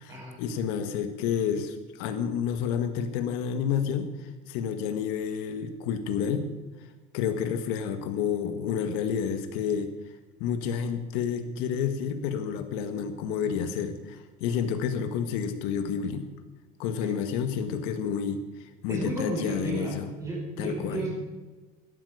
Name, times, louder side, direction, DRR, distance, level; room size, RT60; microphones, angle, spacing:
voice 1, 0.0-6.5 7.1-9.9 10.4-16.3 16.8-18.4 18.8-20.1 20.6-21.1, left 7 dB, 65° left, 8 dB, 1.9 m, -30 dB
voice 2, 18.9-21.5, right 1 dB, 15° right, -2 dB, 5.2 m, -33 dB
17.0 x 12.5 x 5.1 m, 1.2 s
cardioid pair, 175°, 18 cm